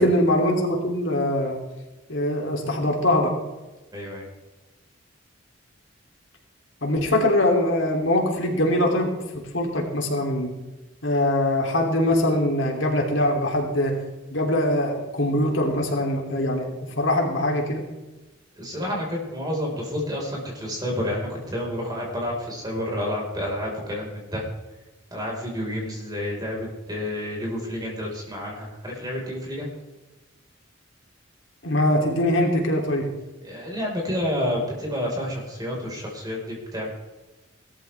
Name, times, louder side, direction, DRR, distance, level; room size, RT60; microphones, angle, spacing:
voice 1, 0.0-1.6 2.1-3.3 6.8-10.5 11.0-14.0 14.3-16.7 17.0-17.8 31.6-33.1, left 1 dB, 70° left, 0 dB, 3.2 m, -22 dB
voice 2, 3.9-4.3 18.6-24.4 25.1-29.7 33.4-36.9, left 1 dB, 20° right, -2 dB, 5.0 m, -29 dB
18.5 x 13.5 x 3.5 m, 1.1 s
head